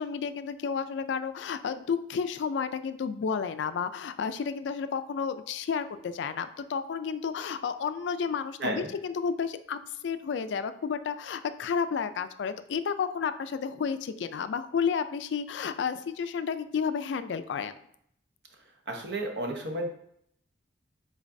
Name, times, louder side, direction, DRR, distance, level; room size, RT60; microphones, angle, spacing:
voice 1, 0.0-17.7, left 6 dB, 70° left, 11 dB, 0.3 m, -31 dB
voice 2, 8.6-8.9 18.9-19.9, right 1 dB, 60° right, 2 dB, 0.8 m, -32 dB
5.0 x 3.9 x 2.6 m, 0.70 s
head